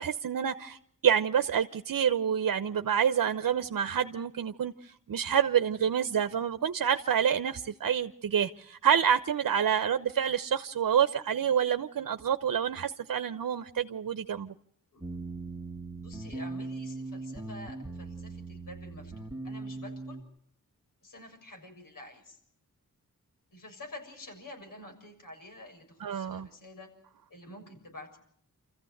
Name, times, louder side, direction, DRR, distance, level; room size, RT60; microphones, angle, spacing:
voice 1, 0.0-14.5 26.0-26.5, right 8 dB, 75° right, 1.0 m, -28 dB
sound 1, 15.0-20.2, right 3 dB, 10° right, 2.2 m, -39 dB
voice 2, 16.0-20.2 21.0-22.4 23.5-26.9 27.3-28.2, left 1 dB, 75° left, 7.0 m, -48 dB
28.0 x 15.0 x 8.0 m
wide cardioid pair, 80°, 33 cm